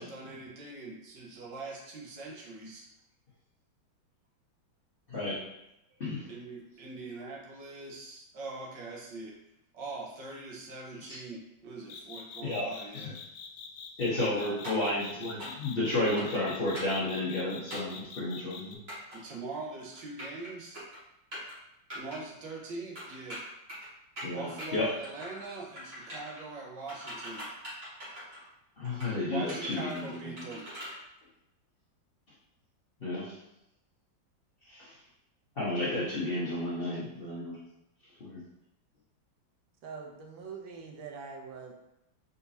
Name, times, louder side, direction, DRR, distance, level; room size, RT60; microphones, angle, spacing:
voice 1, 0.0-2.9 6.3-9.4 9.7-13.2 14.1-14.6 19.1-20.8 21.9-23.4 24.2-27.5 29.3-30.6, right 3 dB, 70° right, -2 dB, 1.6 m, -42 dB
voice 2, 5.1-5.4 6.0-6.3 11.1-11.2 12.4-12.7 12.9-13.1 14.0-18.8 24.2-24.9 28.8-30.5 33.0-33.3 34.7-34.9 35.6-37.6 38.2-38.4, left 2 dB, 40° left, -8 dB, 0.9 m, -32 dB
sound 1, 11.9-18.8, left 6 dB, 85° left, 1.3 m, -45 dB
sound 2, 14.6-14.9 15.4-15.7 16.2-16.4 16.7-17.0 17.7-18.0 18.9-19.2 19.9-20.5 20.7-21.0 21.3-21.5 21.9-22.2 23.0-23.9 24.2-24.7 25.0-25.5 25.8-26.4 26.9-28.5 28.8-29.1 29.5-31.0, equal, 35° right, 1.8 m, -42 dB
voice 3, 39.8-41.7, right 5 dB, 90° right, 2 dB, 1.5 m, -44 dB
4.4 x 4.0 x 2.7 m, 0.84 s
omnidirectional pair, 2.1 m